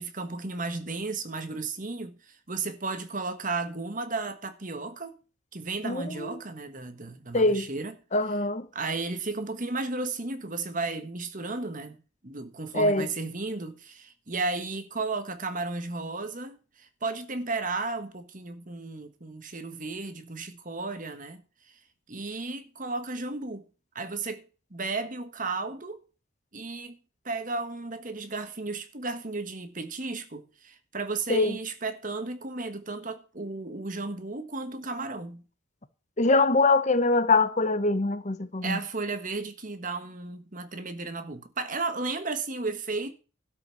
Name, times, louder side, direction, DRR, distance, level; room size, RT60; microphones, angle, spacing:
voice 1, 0.0-5.2 5.5-7.9 8.7-12.0 12.2-21.4 22.1-23.6 23.9-24.4 24.7-26.0 26.5-27.0 27.2-35.4 38.6-43.1, right 3 dB, 40° right, 1.4 m, -34 dB
voice 2, 5.8-6.3 7.3-7.7 8.1-8.7 12.7-13.1 31.3-31.6 36.2-38.8, left 3 dB, 35° left, 0.9 m, -23 dB
12.5 x 5.6 x 7.7 m
head